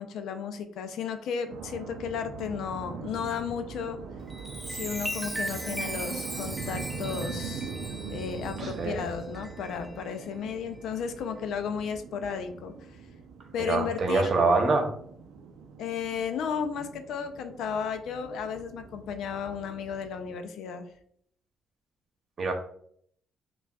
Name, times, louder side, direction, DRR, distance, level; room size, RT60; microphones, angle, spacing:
voice 1, 0.0-4.0 4.7-7.7 8.1-12.7 13.5-14.3 15.8-20.9, left 6 dB, 80° left, 7 dB, 0.5 m, -34 dB
sound 1, 1.5-20.3, right 5 dB, 85° right, 0.5 m, -42 dB
Chime, 4.2-10.2 10.7-11.0, right 1 dB, 10° right, 0.4 m, -38 dB
voice 2, 8.6-9.0 13.6-14.9 22.4-22.5, right 3 dB, 50° right, 4 dB, 0.9 m, -25 dB
5.7 x 2.3 x 2.3 m, 0.64 s
cardioid pair, 90°, 0 cm